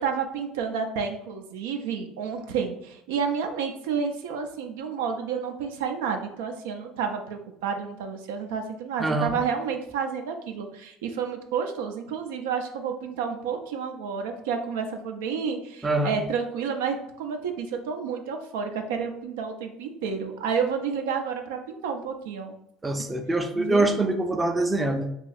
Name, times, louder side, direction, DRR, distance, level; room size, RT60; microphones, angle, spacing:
voice 1, 0.0-22.6 23.0-23.1 23.6-23.9, right 6 dB, 85° right, 4 dB, 0.4 m, -30 dB
voice 2, 9.0-9.3 15.8-16.2 22.8-25.1, right 2 dB, 15° right, 5 dB, 0.5 m, -24 dB
2.8 x 2.3 x 4.0 m, 0.77 s
supercardioid pair, 85°, 0 cm